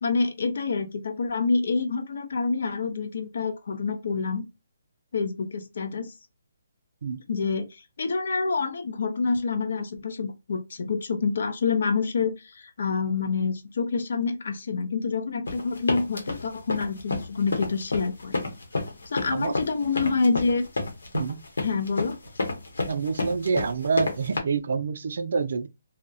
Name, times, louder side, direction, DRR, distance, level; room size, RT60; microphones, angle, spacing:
voice 1, 0.0-4.4 5.1-6.1 7.3-18.3 19.1-20.7 21.6-22.2, left 4 dB, 60° left, 0.5 m, -27 dB
sound 1, 15.5-24.4, left 3 dB, 85° left, 0.8 m, -30 dB
voice 2, 22.9-25.7, right 5 dB, 55° right, 0.3 m, -27 dB
2.3 x 2.0 x 2.6 m
hypercardioid pair, 170°, 0 cm